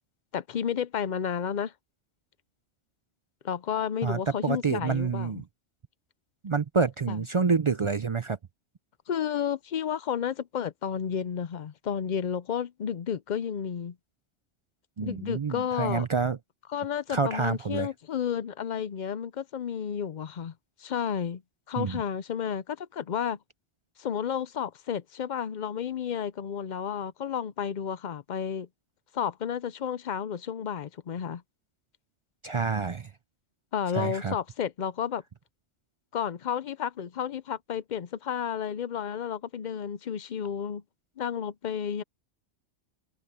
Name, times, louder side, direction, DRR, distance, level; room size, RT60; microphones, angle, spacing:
voice 1, 0.3-1.7 3.4-5.4 7.1-7.2 9.1-14.0 15.0-16.1 16.7-20.5 20.8-21.4 21.7-23.4 24.0-28.7 29.1-31.4 33.7-35.2 36.1-40.8 41.2-42.0, left 8 dB, 50° left, 0.6 m, -32 dB
voice 2, 4.0-5.4 6.4-8.4 15.0-16.4 17.1-17.9 21.8-22.0 32.4-33.1 33.9-34.3, right 5 dB, 55° right, 0.3 m, -28 dB
omnidirectional pair, 1.2 m